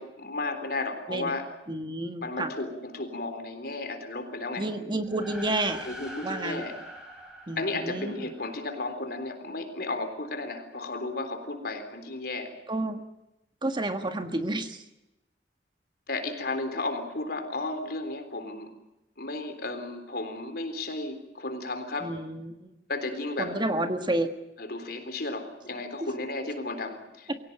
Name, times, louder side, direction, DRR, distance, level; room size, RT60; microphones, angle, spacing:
voice 1, 0.0-1.5 2.2-4.7 5.9-6.8 7.6-12.5 16.1-18.7 19.2-22.1 22.9-23.5 24.6-27.3, left 2 dB, 60° left, 7 dB, 3.8 m, -34 dB
voice 2, 1.7-2.5 4.6-5.9 6.2-6.6 7.5-8.2 12.7-13.0 13.6-14.8 22.0-22.7 23.4-24.3 27.3-27.4, right 1 dB, 25° right, 7 dB, 1.5 m, -30 dB
sound 1, 5.0-8.7, equal, 5° right, 5.1 m, -44 dB
23.0 x 17.5 x 9.2 m, 0.95 s
head